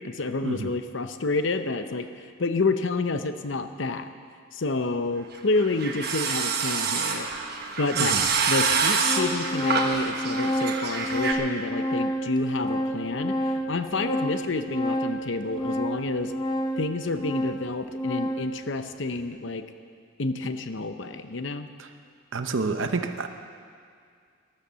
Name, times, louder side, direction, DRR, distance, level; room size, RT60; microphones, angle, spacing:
voice 1, 0.0-4.1 4.5-7.3 7.8-8.2 8.5-16.3 16.8-19.6 20.2-21.7, left 3 dB, 65° left, 9 dB, 0.7 m, -29 dB
sound 1, 5.4-11.3, right 5 dB, 50° right, 1.2 m, -26 dB
Organ, 7.3-7.4 8.3-8.4 8.7-18.6, equal, 20° left, 0.8 m, -29 dB
voice 2, 22.3-23.3, right 3 dB, 70° right, 7 dB, 0.7 m, -28 dB
13.0 x 11.5 x 6.8 m, 2.2 s
head